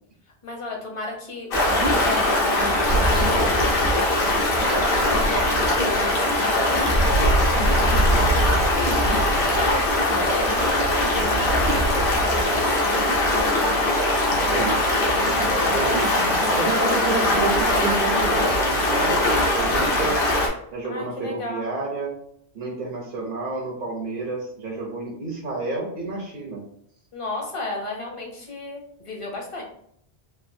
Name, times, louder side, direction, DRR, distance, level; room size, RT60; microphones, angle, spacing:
voice 1, 0.4-9.3 9.5-12.7 20.8-21.6 27.1-29.6, left 2 dB, 35° left, 0 dB, 0.7 m, -35 dB
Stream, 1.5-20.5, left 1 dB, 55° left, 0.9 m, -21 dB
voice 2, 14.5-16.2 16.5-20.2 20.7-22.2 22.5-26.6, right 3 dB, 55° right, -3 dB, 0.8 m, -30 dB
3.3 x 2.5 x 2.6 m, 0.69 s
omnidirectional pair, 1.1 m